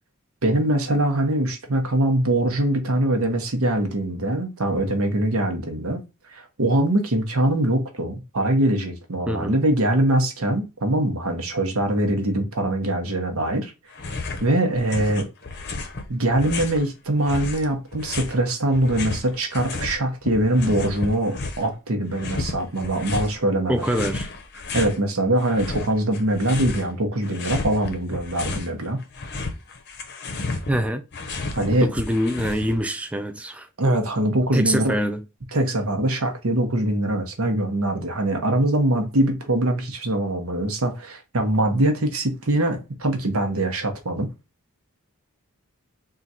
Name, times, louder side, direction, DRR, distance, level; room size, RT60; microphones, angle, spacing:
voice 1, 0.4-6.0 6.3-13.7 14.4-15.3 16.1-23.8 24.7-29.0 31.6-31.9 33.8-35.0 35.5-44.3, right 1 dB, 65° right, 0.9 m, -23 dB
voice 2, 9.3-9.6 23.7-24.3 30.7-31.0 31.8-33.7 34.5-35.2, equal, 5° right, 0.3 m, -24 dB
sound 1, 13.9-14.5 14.7-16.8 17.3-20.0 20.2-21.7 22.1-23.3 23.8-25.0 25.4-26.9 27.2-28.7 29.0-32.9, left 3 dB, 50° left, 0.7 m, -32 dB
3.8 x 2.4 x 4.1 m
head